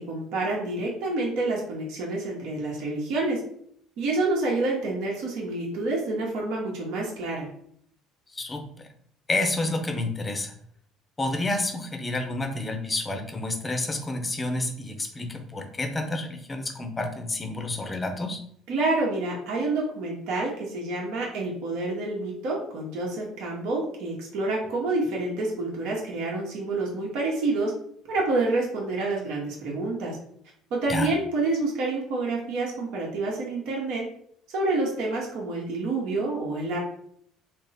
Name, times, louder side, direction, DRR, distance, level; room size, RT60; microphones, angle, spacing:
voice 1, 0.0-3.4 4.0-7.5 18.7-27.7 28.1-30.2 30.7-34.0 34.5-36.8, right 2 dB, 70° right, -3 dB, 1.0 m, -28 dB
voice 2, 8.3-8.9 9.3-10.5 11.2-18.4 30.9-31.1, left 2 dB, 20° left, 5 dB, 0.6 m, -29 dB
3.5 x 2.0 x 4.1 m, 0.66 s
cardioid pair, 120°, 0 cm